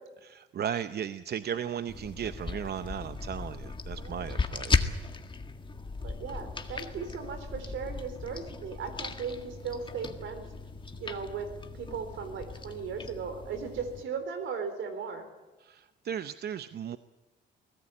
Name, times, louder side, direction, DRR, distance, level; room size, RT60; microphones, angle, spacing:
voice 1, 0.3-4.9 15.6-17.0, right 9 dB, 55° right, 12 dB, 0.7 m, -36 dB
sound 1, 1.9-14.0, left 3 dB, 25° left, 1.7 m, -36 dB
voice 2, 3.9-4.3 6.0-10.5 11.0-11.5 11.7-15.3, right 6 dB, 75° right, 9 dB, 4.1 m, -37 dB
23.5 x 17.5 x 8.7 m, 1.1 s
cardioid pair, 90°, 20 cm